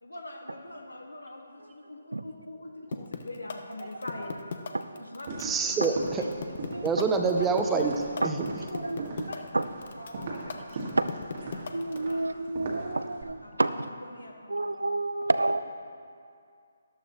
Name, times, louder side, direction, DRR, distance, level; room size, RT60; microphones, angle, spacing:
voice 1, 0.0-4.3 5.0-5.3 6.2-6.3 6.6-6.8 7.2-7.3 7.8-7.9 8.8-8.9 9.3-11.0 11.4-11.7 12.0-12.2 13.4-14.7, left 1 dB, 90° left, 1 dB, 1.8 m, -43 dB
sound 1, 2.9-12.1, left 6 dB, 50° left, 0.8 m, -37 dB
sound 2, 5.2-13.2, right 3 dB, 45° right, 1.7 m, -40 dB
voice 2, 5.4-5.9 6.8-7.9 8.2-8.4, right 5 dB, 10° right, 3 dB, 0.8 m, -25 dB
voice 3, 8.2-9.3 9.5-9.6 10.9-11.1 11.7-13.7 14.5-15.6, right 2 dB, 80° right, 11 dB, 0.6 m, -29 dB
13.5 x 12.0 x 3.1 m, 2.3 s
figure-of-eight pair, 145°, 0 cm